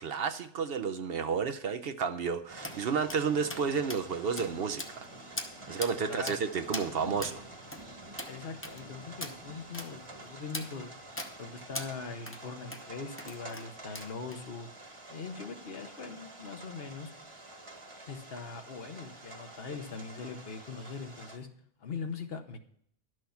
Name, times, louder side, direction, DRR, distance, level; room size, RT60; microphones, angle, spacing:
voice 1, 0.0-5.1 5.7-7.4, right 6 dB, 65° right, 0.8 m, -31 dB
sound 1, 2.5-21.4, right 2 dB, 30° right, 1.3 m, -48 dB
sound 2, 2.6-2.8 3.1-3.2 3.5-3.6 3.9-4.0 4.4-4.5 4.8-5.0 5.4-5.5 5.8-5.9 6.3-6.4 6.7-6.9 7.2-7.3 7.7-7.8 8.2-8.3 8.6-8.8 9.2-9.3 9.7-9.9 10.5-10.7 11.2-11.3 11.7-11.9 12.3-12.4 12.7-12.8 13.2-13.7 13.9-14.4, left 1 dB, 10° left, 0.9 m, -39 dB
voice 2, 6.0-6.4 8.3-10.9 11.4-14.7 15.1-17.1 18.1-21.5 21.8-22.6, left 5 dB, 60° left, 1.2 m, -41 dB
11.5 x 6.4 x 5.7 m
omnidirectional pair, 1.2 m